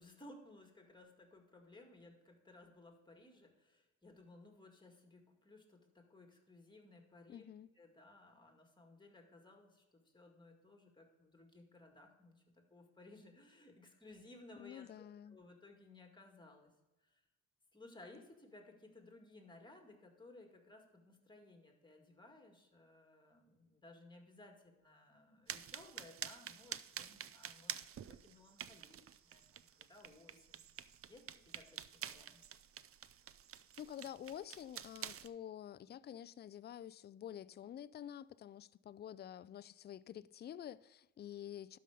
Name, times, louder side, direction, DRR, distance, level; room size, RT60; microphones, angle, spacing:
voice 1, 0.0-7.4 7.7-16.7 17.0-17.2 17.7-27.7 28.1-30.8 31.1-32.4, left 2 dB, 15° left, 2.1 m, -60 dB
voice 2, 7.3-7.7 14.6-15.4 33.8-41.8, left 10 dB, 35° left, 0.4 m, -49 dB
sound 1, 25.5-35.3, right 9 dB, 50° right, 0.5 m, -49 dB
12.0 x 5.5 x 5.0 m
cardioid pair, 90°, 30 cm